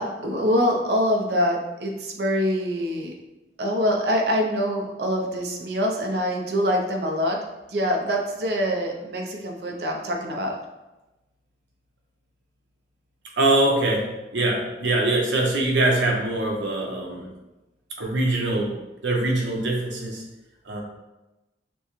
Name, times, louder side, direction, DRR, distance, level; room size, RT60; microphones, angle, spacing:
voice 1, 0.0-3.1 3.6-10.6, equal, 60° right, 1 dB, 0.7 m, -25 dB
voice 2, 13.4-14.0 14.3-17.3 18.0-18.7 19.0-20.2 20.7-20.8, right 2 dB, 85° right, -1 dB, 0.9 m, -23 dB
6.0 x 2.2 x 3.1 m, 1.0 s
head